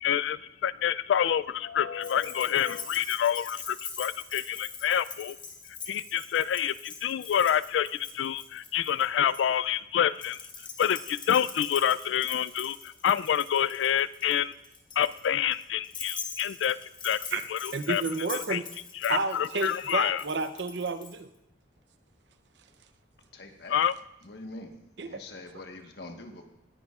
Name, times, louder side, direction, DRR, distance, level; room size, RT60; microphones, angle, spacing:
voice 1, 0.0-5.4 5.9-10.4 10.8-14.5 15.0-16.8 17.0-17.2 17.5-18.0 18.5-18.6 19.0-20.2 23.7-23.9, left 9 dB, 80° left, 17 dB, 0.3 m, -27 dB
Keys jangling, 2.0-9.4 10.2-21.1, left 5 dB, 25° left, 1.2 m, -43 dB
voice 2, 17.7-18.6 19.1-21.3 25.0-25.2, right 3 dB, 70° right, 11 dB, 0.6 m, -31 dB
voice 3, 23.3-23.8 24.2-24.7 25.0-26.5, left 2 dB, 60° left, 3 dB, 1.3 m, -44 dB
18.5 x 10.0 x 2.4 m, 0.83 s
head